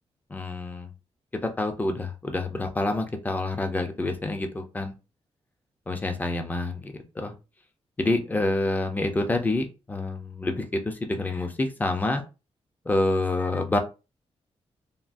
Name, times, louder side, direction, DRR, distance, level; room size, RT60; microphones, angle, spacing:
voice 1, 0.3-0.9 1.4-4.9 5.9-7.3 8.0-12.2 12.9-13.8, left 2 dB, 15° left, 5 dB, 0.6 m, -27 dB
3.5 x 2.4 x 2.5 m, 0.29 s
wide cardioid pair, 155°, 11 cm